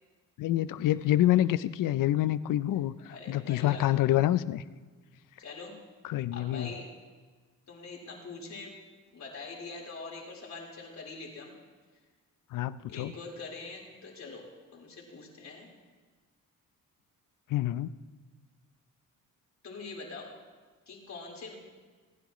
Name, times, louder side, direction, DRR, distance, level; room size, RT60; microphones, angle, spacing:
voice 1, 0.4-2.9 3.3-4.6 6.1-6.7 12.5-13.1 17.5-17.9, left 13 dB, 70° left, 16 dB, 0.6 m, -27 dB
voice 2, 3.1-3.8 5.4-5.7 6.3-6.9 7.7-8.7 9.1-11.5 12.9-14.4 14.7-15.7 19.6-20.3 20.9-21.6, left 3 dB, 55° left, -2 dB, 4.2 m, -43 dB
28.0 x 10.0 x 3.1 m, 1.4 s
cardioid pair, 75°, 33 cm